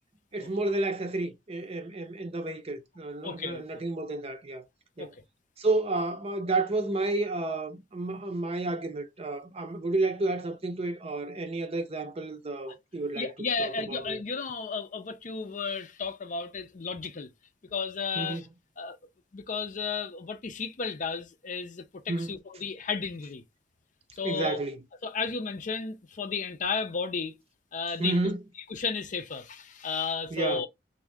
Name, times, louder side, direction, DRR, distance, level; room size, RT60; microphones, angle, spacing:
voice 1, 0.3-4.6 5.0-5.1 5.6-14.2 18.2-18.4 22.1-22.4 24.2-24.8 28.0-28.4 30.3-30.6, right 2 dB, 35° right, 0.6 m, -31 dB
voice 2, 3.2-3.6 5.0-5.1 13.1-17.3 17.7-18.5 18.8-19.0 19.3-23.4 24.2-24.6 25.0-27.4 27.7-28.2 28.7-30.7, left 5 dB, 45° left, 0.5 m, -33 dB
3.6 x 2.6 x 3.4 m
head